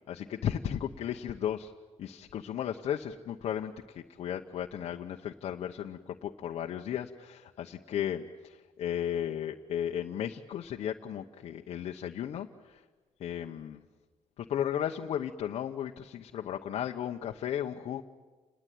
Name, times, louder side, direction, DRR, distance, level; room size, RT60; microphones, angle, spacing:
voice 1, 0.1-1.7 2.0-12.8 13.2-13.8 14.4-18.0, left 10 dB, 65° left, 1 dB, 1.0 m, -35 dB
29.0 x 20.5 x 9.4 m, 1.3 s
cardioid pair, 180°, 11 cm